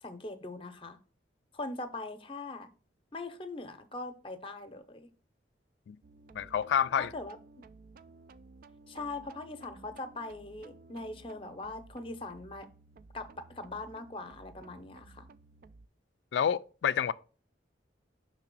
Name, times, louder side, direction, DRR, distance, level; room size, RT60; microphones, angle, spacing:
voice 1, 0.0-1.0 1.5-2.7 3.1-5.1 7.0-7.4 8.9-12.7 13.1-15.3, left 2 dB, 30° left, 0.7 m, -41 dB
sound 1, 6.0-15.9, right 3 dB, 50° right, 0.3 m, -55 dB
voice 2, 6.3-7.1 16.3-17.1, left 8 dB, 75° left, 0.3 m, -28 dB
5.8 x 3.3 x 5.2 m
head